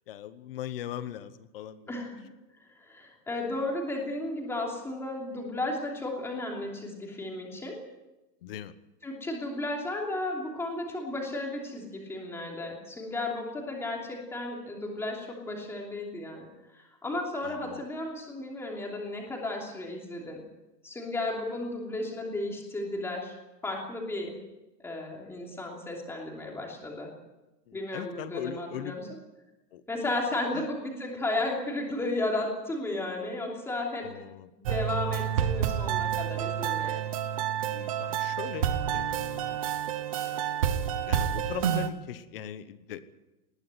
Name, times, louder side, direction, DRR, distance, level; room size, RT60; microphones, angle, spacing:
voice 1, 0.1-2.0 8.4-8.7 17.4-17.8 27.7-29.0 29.7-29.8 30.5-30.6 34.0-34.5 37.6-39.6 40.1-40.7 41.1-43.0, left 11 dB, 35° left, 14 dB, 1.1 m, -40 dB
voice 2, 2.8-7.8 9.0-16.5 16.7-20.4 20.8-23.3 23.6-24.4 24.8-27.1 27.7-29.1 29.9-34.1 34.6-37.0, left 2 dB, 5° left, -1 dB, 2.9 m, -34 dB
sound 1, 34.6-41.9, right 9 dB, 20° right, 0.7 m, -29 dB
20.0 x 14.0 x 9.7 m, 1.0 s
supercardioid pair, 175°, 50 cm